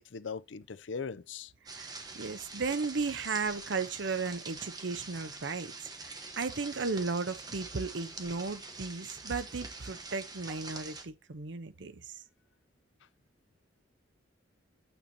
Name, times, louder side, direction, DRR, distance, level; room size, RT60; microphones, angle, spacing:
voice 1, 0.0-1.5, left 5 dB, 80° left, 0.6 m, -40 dB
sound 1, 1.7-11.0, right 3 dB, 20° right, 1.2 m, -45 dB
voice 2, 1.7-5.7 6.0-12.2, right 4 dB, 75° right, 0.8 m, -35 dB
9.0 x 6.8 x 2.8 m
head